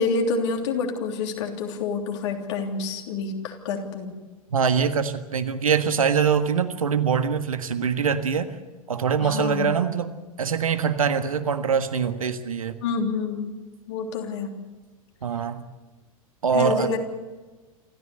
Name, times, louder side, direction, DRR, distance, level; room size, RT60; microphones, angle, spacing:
voice 1, 0.0-4.1 9.2-9.7 12.8-13.5 13.9-14.5 16.5-17.0, left 4 dB, 50° left, 2 dB, 3.3 m, -27 dB
voice 2, 4.5-8.5 8.9-10.1 10.4-12.8 15.2-15.6 16.4-16.9, right 6 dB, 70° right, 10 dB, 1.5 m, -23 dB
27.5 x 14.0 x 8.1 m, 1.2 s
figure-of-eight pair, 90°, 18 cm